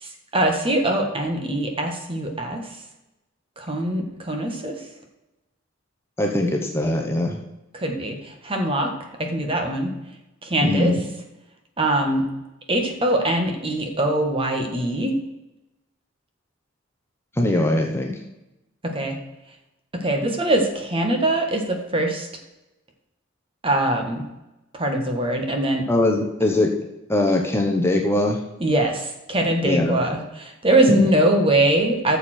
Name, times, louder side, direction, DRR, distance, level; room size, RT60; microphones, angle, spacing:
voice 1, 0.0-2.7 3.6-4.8 7.7-8.9 9.2-9.9 10.4-10.9 11.8-12.3 12.7-15.1 18.8-19.2 19.9-22.3 23.6-24.2 24.7-25.9 28.6-32.2, right 1 dB, 25° right, 3 dB, 1.7 m, -22 dB
voice 2, 6.2-7.4 10.6-11.0 17.4-18.1 25.9-26.7 27.1-28.4 29.6-30.0 30.9-31.0, left 1 dB, 10° left, 1 dB, 1.1 m, -21 dB
13.5 x 7.0 x 4.5 m, 0.96 s
head